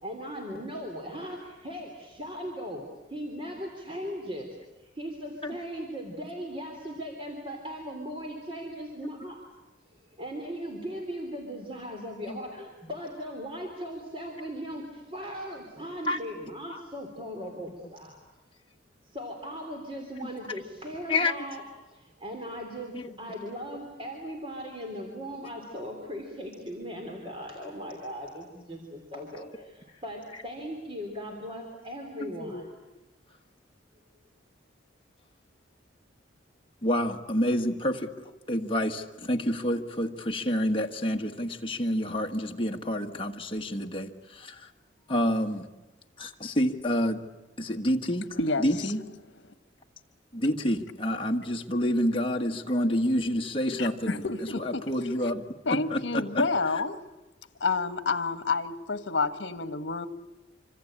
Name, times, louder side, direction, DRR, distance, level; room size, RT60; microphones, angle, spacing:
voice 1, 0.0-2.8 3.1-4.5 4.8-9.4 9.9-18.2 19.0-21.6 21.9-32.8, equal, 30° right, 2 dB, 3.3 m, -38 dB
voice 2, 36.8-44.7 45.1-45.6 46.2-47.2 47.6-49.0 50.3-54.2 54.6-55.4 55.7-56.5, left 1 dB, 30° left, 2 dB, 1.5 m, -28 dB
voice 3, 48.4-48.9 53.8-54.8 55.6-57.0 57.6-60.1, left 4 dB, 70° left, 12 dB, 1.3 m, -29 dB
26.0 x 25.5 x 8.8 m, 1.1 s
head